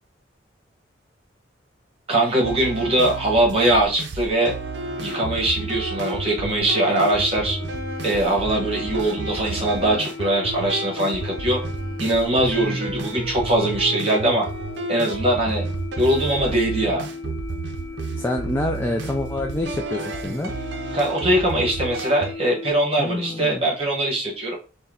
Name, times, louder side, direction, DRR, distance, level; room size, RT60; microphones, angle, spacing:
voice 1, 2.1-4.5 5.0-7.6 8.0-11.6 12.0-14.5 14.9-15.6 16.0-17.1 20.9-24.5, right 1 dB, 30° right, -2 dB, 1.4 m, -21 dB
sound 1, 2.4-22.3, right 3 dB, 60° right, 0.5 m, -31 dB
sound 2, 5.0-22.7, left 4 dB, 75° left, 0.9 m, -37 dB
voice 2, 18.2-20.5 23.0-23.6, left 1 dB, 10° left, 2 dB, 0.3 m, -27 dB
4.2 x 2.2 x 3.8 m, 0.33 s
head